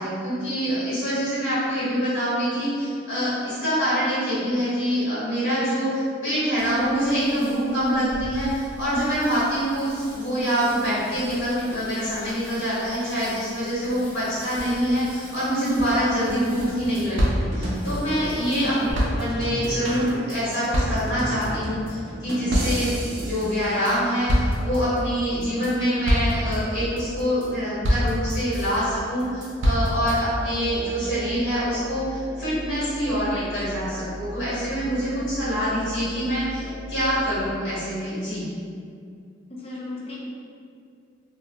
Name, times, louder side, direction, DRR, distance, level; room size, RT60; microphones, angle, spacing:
voice 1, 0.0-38.5, equal, 85° left, -12 dB, 1.1 m, -25 dB
Bicycle, 6.6-18.9, equal, 10° left, 0.9 m, -42 dB
sound 1, 16.3-16.4 16.6-16.7 16.9-18.6 18.9-24.0 24.3-25.0 25.4-25.7 26.1-26.6 27.0-27.5 27.8-28.8 29.2-30.2, equal, 80° right, 0.5 m, -26 dB
voice 2, 18.6-18.9 39.5-40.2, left 1 dB, 30° left, -6 dB, 0.5 m, -36 dB
sound 2, 30.0-37.5, equal, 20° right, 0.8 m, -38 dB
2.4 x 2.0 x 3.3 m, 2.3 s
head